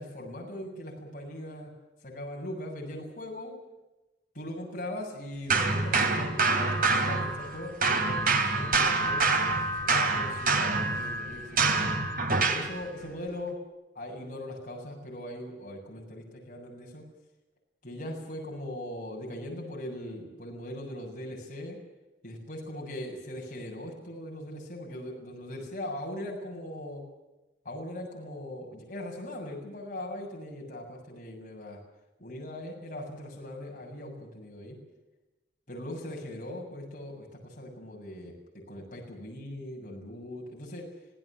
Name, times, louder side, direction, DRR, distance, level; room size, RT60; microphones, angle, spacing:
voice 1, 0.0-1.7 2.0-3.5 4.3-9.4 9.8-11.9 12.4-13.6 14.0-17.0 17.8-21.8 22.2-27.0 27.6-31.8 32.2-34.8 35.7-38.3 38.7-40.9, left 1 dB, 45° left, -1 dB, 7.4 m, -40 dB
sound 1, 5.5-7.6 7.8-12.7, right 3 dB, 50° right, 3.2 m, -26 dB
26.5 x 17.0 x 7.6 m, 1.0 s
head